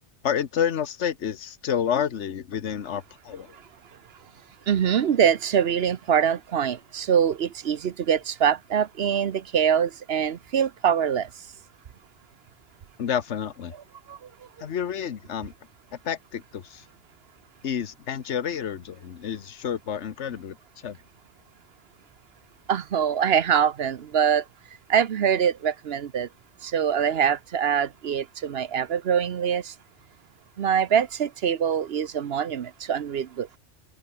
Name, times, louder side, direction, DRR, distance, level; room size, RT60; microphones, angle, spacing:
voice 1, 0.2-3.6 13.0-13.7 14.6-15.5 16.0-16.9 17.6-21.0, left 8 dB, 75° left, 1.4 m, -29 dB
voice 2, 4.7-11.3 14.1-14.2 22.7-24.4 24.9-26.3 26.6-29.7 30.6-33.6, right 8 dB, 60° right, 1.0 m, -24 dB
omnidirectional pair, 1.2 m